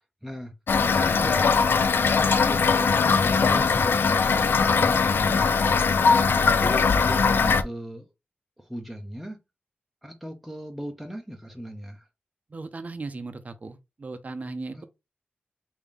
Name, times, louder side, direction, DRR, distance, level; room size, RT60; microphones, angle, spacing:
voice 1, 0.2-0.5 0.8-1.5 2.0-5.4 6.5-8.1 8.6-9.4 10.0-12.1 14.7-14.8, equal, ahead, 0.6 m, -37 dB
Toilet flush / Fill (with liquid), 0.7-7.6, left 5 dB, 75° left, 0.4 m, -21 dB
voice 2, 12.5-14.8, right 3 dB, 45° right, 0.5 m, -37 dB
3.4 x 2.6 x 3.4 m
wide cardioid pair, 65°, 4 cm